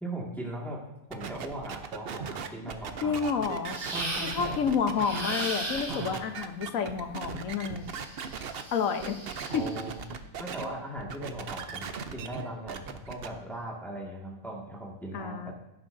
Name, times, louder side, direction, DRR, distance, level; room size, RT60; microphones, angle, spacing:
voice 1, 0.0-0.8 1.1-3.3 3.9-4.6 5.9-6.3 9.5-10.0 10.4-15.5, right 1 dB, ahead, -3 dB, 1.7 m, -39 dB
sound 1, 1.1-8.6 9.0-10.7 11.0-13.3, right 6 dB, 55° right, 0.8 m, -38 dB
voice 2, 3.0-3.8 4.2-7.9 8.7-9.2 9.5-9.7 15.1-15.5, left 6 dB, 70° left, 7 dB, 1.2 m, -30 dB
sound 2, 3.7-4.6 5.0-6.2 7.9-9.8, right 1 dB, 40° right, 2.0 m, -37 dB
16.0 x 8.9 x 2.6 m, 0.90 s
omnidirectional pair, 1.5 m